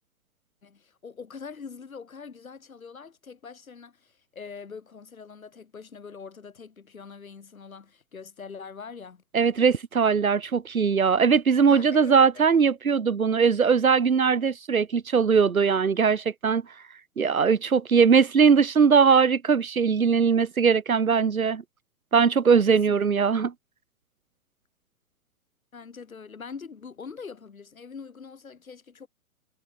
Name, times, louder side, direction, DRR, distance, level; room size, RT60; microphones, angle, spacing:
voice 1, 0.6-9.2 11.7-12.6 22.7-23.4 25.7-29.1, left 5 dB, 75° left, 4.3 m, -43 dB
voice 2, 9.3-16.6 17.2-21.6 22.1-23.5, right 6 dB, 75° right, 2.1 m, -20 dB
figure-of-eight pair, 115°, 42 cm